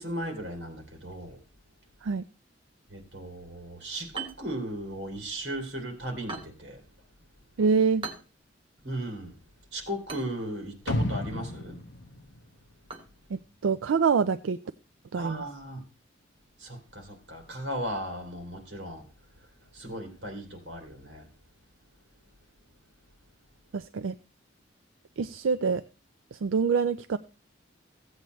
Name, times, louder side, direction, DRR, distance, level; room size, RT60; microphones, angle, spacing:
voice 1, 0.0-1.4 2.9-6.9 8.8-9.4 9.7-11.8 15.2-15.8 16.6-21.3, right 1 dB, 60° right, 2.8 m, -37 dB
sound 1, 4.1-14.2, right 5 dB, 25° right, 1.1 m, -47 dB
voice 2, 7.6-8.1 13.3-14.6 15.1-15.4 23.7-24.1 25.2-25.8 26.3-27.2, right 5 dB, 85° right, 0.4 m, -26 dB
sound 2, 10.9-13.0 13.4-13.5, left 1 dB, 65° left, 0.8 m, -33 dB
15.5 x 8.0 x 3.1 m
head